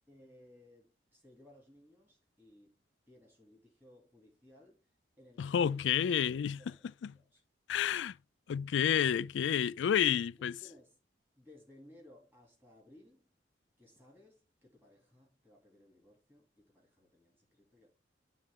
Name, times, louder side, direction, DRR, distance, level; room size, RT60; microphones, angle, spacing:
voice 1, 0.1-4.8 5.2-6.9 7.1-7.4 10.0-10.2 10.6-11.0 11.4-13.3 13.8-17.9, left 1 dB, 10° right, 2.7 m, -61 dB
voice 2, 5.4-6.6 7.7-8.2 8.5-10.5, left 8 dB, 85° left, 0.3 m, -30 dB
11.0 x 3.8 x 3.6 m
head